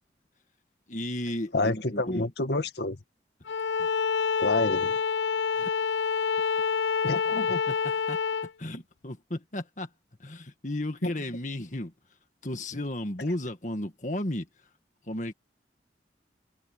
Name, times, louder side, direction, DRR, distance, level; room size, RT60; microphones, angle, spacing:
voice 1, 0.9-2.3 3.8-3.9 5.5-5.7 7.0-7.2 7.7-8.2 8.6-9.9 10.2-11.9 12.4-14.5 15.0-15.3, left 1 dB, 45° left, 1.8 m, -34 dB
voice 2, 1.5-3.0 4.4-5.0 7.0-7.6 11.0-11.1, left 2 dB, 70° left, 2.0 m, -28 dB
Bowed string instrument, 3.5-8.5, left 6 dB, 85° left, 0.5 m, -27 dB
open air
head